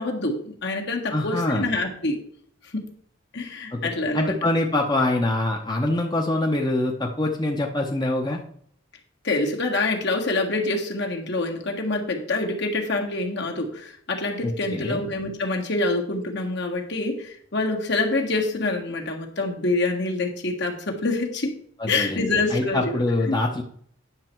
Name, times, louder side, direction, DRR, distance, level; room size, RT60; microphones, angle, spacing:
voice 1, 0.0-2.2 2.7-2.8 3.3-4.4 9.2-21.5 21.9-23.0 23.3-23.4, left 2 dB, 60° left, 1 dB, 1.8 m, -26 dB
voice 2, 1.1-1.7 3.7-3.8 4.1-8.4 14.4-15.0 21.8-23.6, left 2 dB, 20° left, 1 dB, 0.9 m, -24 dB
9.9 x 6.7 x 4.5 m, 0.62 s
head